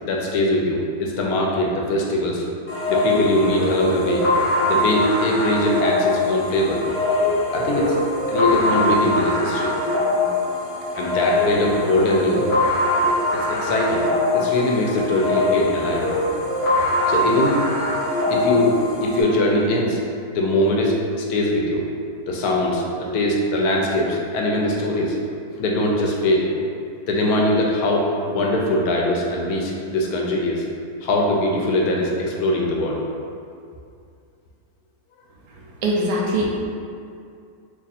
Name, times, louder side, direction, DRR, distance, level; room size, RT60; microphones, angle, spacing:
voice 1, 0.0-2.4 2.9-4.2 4.7-6.8 7.5-8.0 8.3-9.7 11.0-12.5 13.3-14.1 14.3-16.1 17.1-17.6 18.3-20.0 20.3-21.8 22.3-25.2 25.6-26.5 27.1-30.6 31.0-33.0, left 1 dB, 85° left, -2 dB, 1.1 m, -21 dB
sound 1, 2.7-19.2, left 2 dB, 15° left, 0.5 m, -22 dB
voice 2, 35.8-36.5, right 1 dB, 75° right, -2 dB, 1.1 m, -21 dB
2.8 x 2.4 x 4.0 m, 2.4 s
omnidirectional pair, 1.6 m